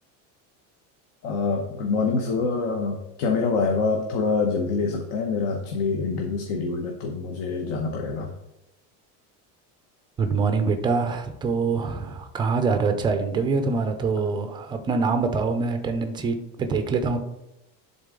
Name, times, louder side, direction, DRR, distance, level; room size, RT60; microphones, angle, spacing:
voice 1, 1.2-8.3, left 4 dB, 70° left, 3 dB, 1.0 m, -25 dB
voice 2, 10.2-17.2, right 4 dB, 15° right, 7 dB, 0.4 m, -24 dB
10.5 x 3.9 x 3.7 m, 0.87 s
cardioid pair, 175°, 36 cm